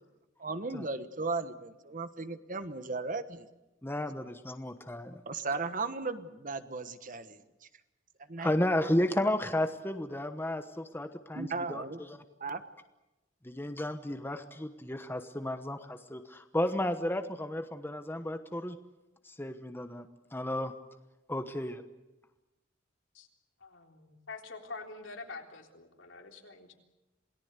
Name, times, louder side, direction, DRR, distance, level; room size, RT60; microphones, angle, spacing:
voice 1, 0.4-3.5 5.3-7.4 8.3-8.5 8.8-8.9 11.3-12.0 12.4-12.6, right 3 dB, 45° right, 11 dB, 1.3 m, -36 dB
voice 2, 3.8-5.2 8.4-11.8 13.4-18.8 19.2-20.7 21.3-21.8, left 1 dB, 10° left, 8 dB, 1.1 m, -33 dB
voice 3, 23.6-26.8, left 3 dB, 75° left, 2 dB, 3.6 m, -46 dB
27.5 x 18.5 x 8.2 m, 1.0 s
head